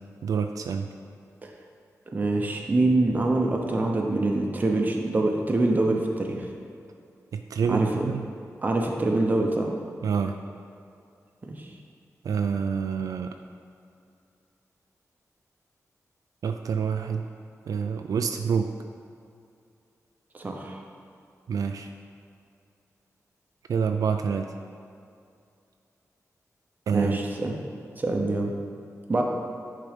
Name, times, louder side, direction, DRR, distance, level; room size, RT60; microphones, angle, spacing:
voice 1, 0.2-0.9 7.3-8.3 10.0-10.3 12.2-13.3 16.4-17.3 17.7-18.7 21.5-21.9 23.7-24.5 26.9-27.2, right 6 dB, 80° right, 6 dB, 0.4 m, -27 dB
voice 2, 2.1-6.5 7.6-8.1 8.6-9.7 11.4-11.7 20.3-20.8 26.9-27.6 28.0-28.5 29.1-29.2, right 2 dB, 30° right, 1 dB, 0.8 m, -25 dB
10.0 x 3.8 x 5.1 m, 2.5 s
wide cardioid pair, 160°, 6 cm